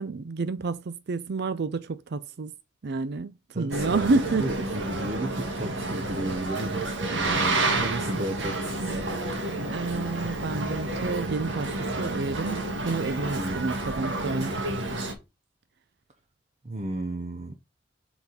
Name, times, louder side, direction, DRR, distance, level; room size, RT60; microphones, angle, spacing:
voice 1, 0.0-2.5 2.8-4.5 7.2-7.6 8.8-9.2 9.7-14.6, right 3 dB, 60° right, 0.5 m, -30 dB
voice 2, 3.5-9.0 13.3-13.7 16.6-17.6, right 1 dB, 40° right, 0.9 m, -34 dB
Boat Water vehicle, 3.7-15.1, right 2 dB, 85° right, 1.5 m, -30 dB
7.1 x 4.1 x 5.1 m
head